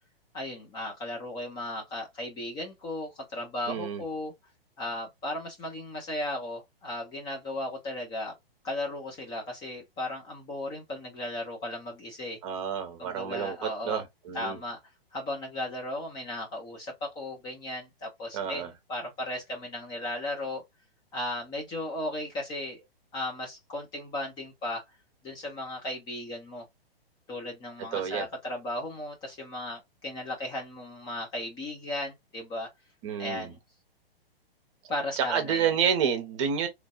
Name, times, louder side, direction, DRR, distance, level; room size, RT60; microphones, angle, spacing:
voice 1, 0.3-4.3 4.8-8.3 8.6-12.4 13.0-14.0 14.3-14.8 15.1-20.6 21.1-22.8 23.1-24.8 25.2-26.6 27.3-32.7 33.2-33.6 34.9-35.7, left 1 dB, 15° left, 0.6 m, -36 dB
voice 2, 3.7-4.0 12.4-14.6 18.3-18.7 27.9-28.3 33.0-33.5 35.2-36.7, right 7 dB, 30° right, 0.8 m, -29 dB
3.2 x 2.5 x 2.3 m
figure-of-eight pair, 115°, 30 cm